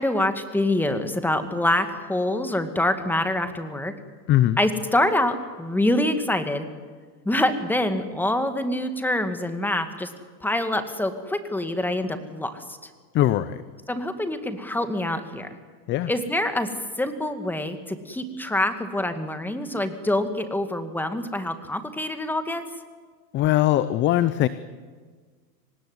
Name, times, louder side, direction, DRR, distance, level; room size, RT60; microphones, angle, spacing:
voice 1, 0.0-3.9 4.6-6.7 7.3-10.1 10.4-12.8 13.9-15.5 16.1-16.7 17.0-22.6, left 1 dB, 5° left, 8 dB, 2.1 m, -25 dB
voice 2, 13.1-13.6 15.9-16.1 23.3-24.5, left 13 dB, 25° left, 15 dB, 0.6 m, -20 dB
25.5 x 19.0 x 9.7 m, 1.5 s
hypercardioid pair, 125°, 49 cm